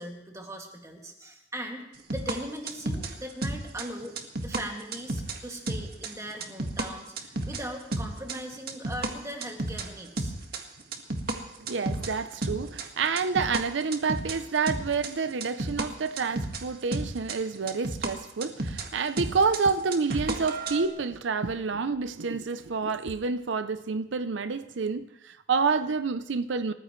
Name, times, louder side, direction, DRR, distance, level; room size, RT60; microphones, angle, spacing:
voice 1, 0.0-4.1 4.4-10.3, equal, 15° right, 2.2 m, -39 dB
sound 1, 2.1-6.9 7.2-9.9 10.2-11.4 11.7-13.6 13.9-15.9 16.2-18.9 19.2-20.8, right 2 dB, 55° right, 1.7 m, -32 dB
voice 2, 11.6-26.7, right 5 dB, 80° right, 0.6 m, -28 dB
28.0 x 14.5 x 3.2 m
head